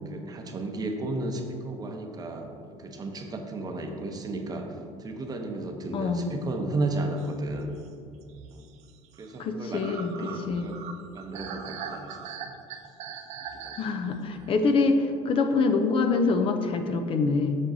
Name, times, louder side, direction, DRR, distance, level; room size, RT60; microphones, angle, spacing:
voice 1, 0.0-2.5 2.8-4.7 5.0-7.7 8.5-8.7 9.2-10.8 11.1-12.4 13.5-13.8, right 2 dB, 30° right, 4 dB, 0.8 m, -33 dB
voice 2, 5.9-6.3 9.4-10.7 13.8-17.6, left 4 dB, 45° left, 6 dB, 0.5 m, -25 dB
sound 1, 7.2-14.9, right 7 dB, 65° right, 0.5 m, -42 dB
7.4 x 6.0 x 2.7 m, 2.3 s
supercardioid pair, 90°, 13 cm